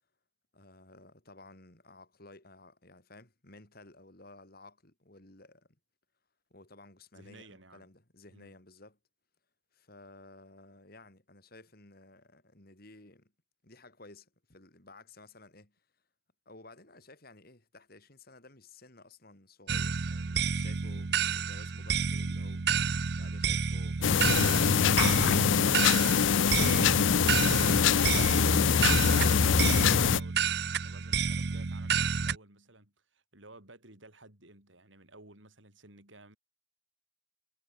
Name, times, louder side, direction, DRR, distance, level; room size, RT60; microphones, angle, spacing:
voice 1, 0.5-5.7 6.5-9.0 9.7-13.3 13.6-15.8 16.5-22.7 23.2-25.7, left 2 dB, 50° left, 4.2 m, -54 dB
voice 2, 7.1-7.9 8.3-8.5 27.1-36.4, right 2 dB, 80° right, 6.5 m, -55 dB
sound 1, 19.7-32.4, right 6 dB, 60° right, 0.7 m, -30 dB
sound 2, 24.0-30.2, left 7 dB, 80° left, 0.5 m, -24 dB
head